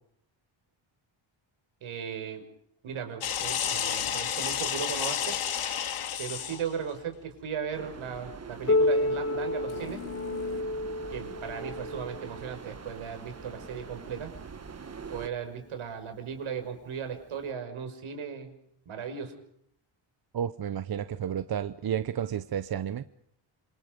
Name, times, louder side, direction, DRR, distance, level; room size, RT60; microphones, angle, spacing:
voice 1, 1.8-2.4 2.8-5.4 6.2-10.0 11.1-14.3 15.1-18.5 18.9-19.3, right 7 dB, 80° right, 7 dB, 5.8 m, -37 dB
sound 1, 3.2-6.7 9.7-10.6, left 9 dB, 80° left, 2.9 m, -31 dB
sound 2, 7.7-15.3, right 6 dB, 30° right, 1.4 m, -44 dB
Piano, 8.7-14.0 14.9-15.0 15.4-15.5 16.3-16.4 17.5-17.6, left 2 dB, 30° left, 2.8 m, -30 dB
voice 2, 20.3-23.0, right 9 dB, 50° right, 12 dB, 1.0 m, -31 dB
27.5 x 26.0 x 5.4 m, 0.68 s
cardioid pair, 110°, 48 cm